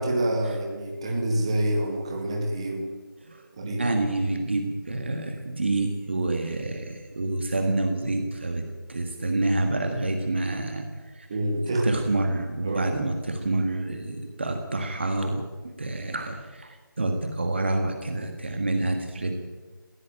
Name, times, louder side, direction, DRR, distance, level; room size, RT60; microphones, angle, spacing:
voice 1, 0.0-2.9 3.5-3.9 11.3-11.9 12.6-12.9, right 1 dB, 15° right, 1 dB, 2.0 m, -27 dB
voice 2, 3.8-11.3 11.6-15.4 15.8-19.3, right 2 dB, 30° right, 4 dB, 1.8 m, -28 dB
20.0 x 16.0 x 8.9 m, 1.3 s
figure-of-eight pair, 175°, 12 cm